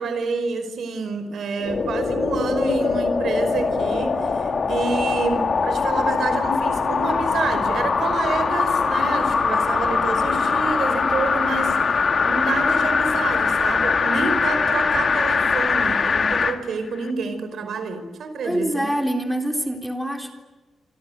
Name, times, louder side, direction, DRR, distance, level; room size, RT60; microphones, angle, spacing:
voice 1, 0.0-11.7 12.2-18.9, right 4 dB, 70° right, 9 dB, 5.0 m, -28 dB
sound 1, 1.6-16.6 17.0-17.1, left 5 dB, 45° left, 2.3 m, -22 dB
voice 2, 18.4-20.3, right 1 dB, ahead, 4 dB, 3.7 m, -25 dB
27.0 x 27.0 x 8.1 m, 1.2 s
cardioid pair, 115°, 0 cm